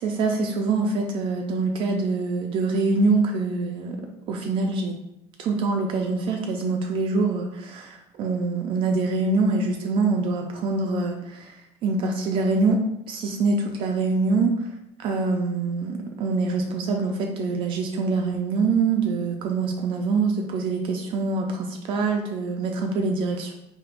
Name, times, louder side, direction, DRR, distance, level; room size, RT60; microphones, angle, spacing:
voice 1, 0.0-4.0 4.3-4.9 5.4-12.8 13.1-14.5 15.0-23.5, right 3 dB, 50° right, 2 dB, 0.4 m, -24 dB
3.4 x 2.8 x 2.4 m, 0.85 s
cardioid pair, 135°, 11 cm